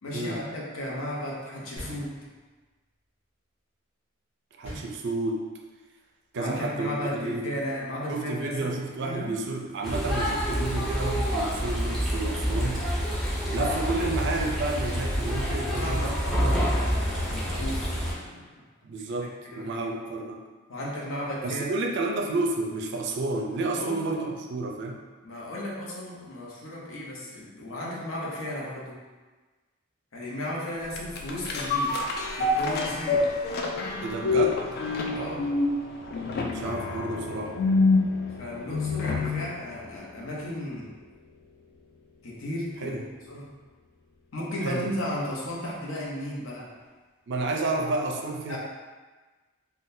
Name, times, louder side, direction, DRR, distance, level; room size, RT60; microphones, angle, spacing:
voice 1, 0.0-2.1 6.3-8.7 9.0-9.4 15.6-18.6 19.4-19.9 20.7-21.8 23.7-24.3 25.2-29.0 30.1-32.0 32.3-33.3 35.1-35.5 38.4-41.0 42.2-43.5 44.3-46.7 48.5-48.6, left 1 dB, 75° left, -4 dB, 0.7 m, -35 dB
sound 1, 1.8-2.7 4.6-5.6, equal, 30° left, 1.3 m, -42 dB
voice 2, 4.6-5.5 6.3-7.5 8.1-12.8 13.5-16.0 16.4-16.7 18.8-20.4 21.4-25.0 34.0-34.6 36.5-37.6 42.8-43.0 44.6-44.9 47.3-48.6, right 2 dB, 60° right, 2 dB, 0.4 m, -30 dB
sound 2, 9.8-18.1, equal, ahead, 0.5 m, -27 dB
sound 3, 30.9-39.5 39.9-40.0, left 3 dB, 50° left, 0.3 m, -27 dB
3.7 x 2.2 x 2.6 m, 1.3 s
head